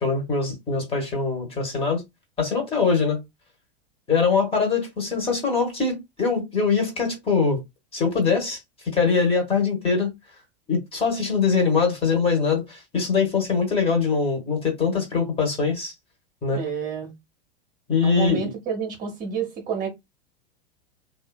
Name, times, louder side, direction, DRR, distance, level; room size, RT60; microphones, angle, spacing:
voice 1, 0.0-2.0 2.4-3.2 4.1-7.6 7.9-8.6 8.8-10.1 10.7-15.9 16.4-16.6 17.9-18.5, left 5 dB, 20° left, 1.1 m, -23 dB
voice 2, 16.5-17.1 18.0-19.9, right 6 dB, 30° right, 0.8 m, -29 dB
2.6 x 2.4 x 2.2 m
figure-of-eight pair, 90°, 30 cm